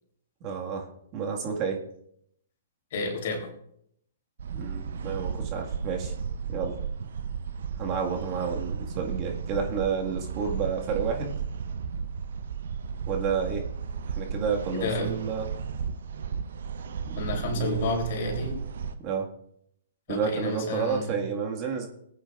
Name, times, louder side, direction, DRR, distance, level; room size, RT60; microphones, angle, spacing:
voice 1, 0.4-0.9 1.1-1.8 4.5-6.1 6.5-6.8 7.8-11.4 13.1-13.6 14.1-15.5 17.0-17.9 19.0-19.3 20.1-21.9, right 6 dB, 35° right, 1 dB, 1.9 m, -30 dB
voice 2, 2.9-3.5 14.7-15.1 17.2-18.6 20.1-21.2, left 2 dB, 55° left, 1 dB, 3.4 m, -30 dB
sound 1, 4.4-18.9, right 6 dB, 70° right, 0.9 m, -34 dB
19.5 x 8.9 x 2.5 m, 0.71 s
hypercardioid pair, 130°, 0 cm